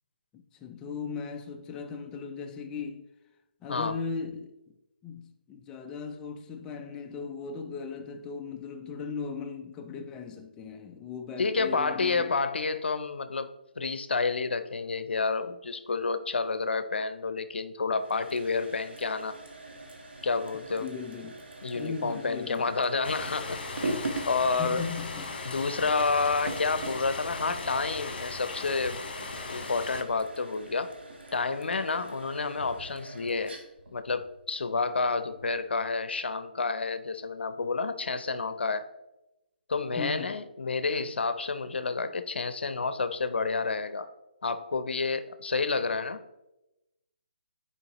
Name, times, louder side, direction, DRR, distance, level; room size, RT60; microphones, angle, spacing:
voice 1, 0.3-3.1 3.6-4.5 5.0-12.3 20.8-21.4 21.7-22.7 24.5-25.4 40.0-40.3, left 5 dB, 10° left, 0.4 m, -38 dB
voice 2, 11.4-13.5 13.8-19.4 20.2-20.9 21.6-24.8 25.4-30.9 31.3-33.6 33.9-38.9 39.7-44.1 44.4-46.2, left 4 dB, 90° left, 0.6 m, -30 dB
sound 1, 17.9-35.7, right 2 dB, 85° right, 1.4 m, -42 dB
sound 2, 23.0-30.0, left 3 dB, 60° left, 1.3 m, -38 dB
9.8 x 4.5 x 2.9 m
hypercardioid pair, 165°, 6 cm